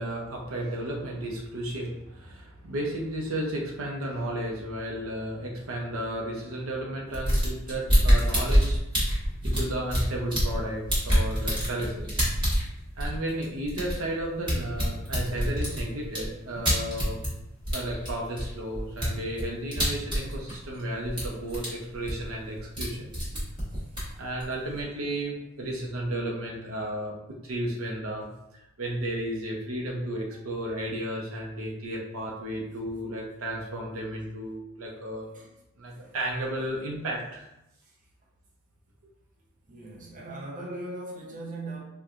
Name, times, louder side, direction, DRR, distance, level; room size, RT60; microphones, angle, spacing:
voice 1, 0.0-8.8 9.4-12.3 13.0-17.2 17.7-23.0 24.2-28.3 28.8-35.3 35.8-37.5, right 1 dB, 75° right, 0.6 m, -33 dB
sound 1, 7.1-10.6 10.9-17.4 17.7-20.8 21.1-21.7 21.9-22.9 23.1-24.8, equal, 20° right, 1.3 m, -26 dB
voice 2, 23.7-24.0 35.3-35.5 35.9-36.1 37.8-37.9 39.7-41.8, right 2 dB, 40° right, 0.8 m, -40 dB
4.3 x 2.2 x 2.5 m
head